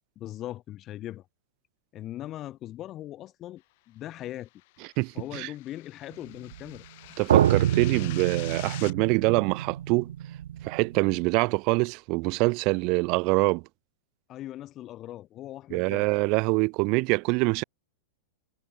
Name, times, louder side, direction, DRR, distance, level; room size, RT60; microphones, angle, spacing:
voice 1, 0.2-1.3 1.9-4.5 5.1-6.9 14.3-16.1, left 13 dB, 20° left, 2.0 m, -40 dB
sound 1, 4.5-8.9, left 22 dB, 40° left, 3.9 m, -46 dB
voice 2, 5.0-5.5 7.2-10.1 10.6-13.6 15.7-17.6, right 29 dB, 30° right, 0.4 m, -25 dB
sound 2, 6.5-6.6 7.3-11.3, right 11 dB, 80° right, 1.7 m, -27 dB
supercardioid pair, 175°, 0 cm